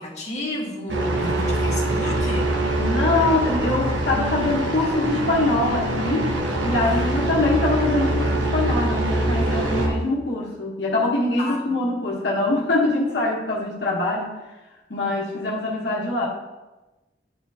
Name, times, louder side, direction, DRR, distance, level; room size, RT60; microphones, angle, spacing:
voice 1, 0.0-2.5 6.8-7.2 11.4-11.9, left 1 dB, 40° left, -4 dB, 1.6 m, -32 dB
sound 1, 0.9-9.9, right 1 dB, 90° right, 1.2 m, -24 dB
voice 2, 2.8-6.3 6.6-14.4 14.9-16.3, left 2 dB, 75° left, -4 dB, 1.1 m, -23 dB
10.5 x 4.3 x 2.8 m, 1.1 s
head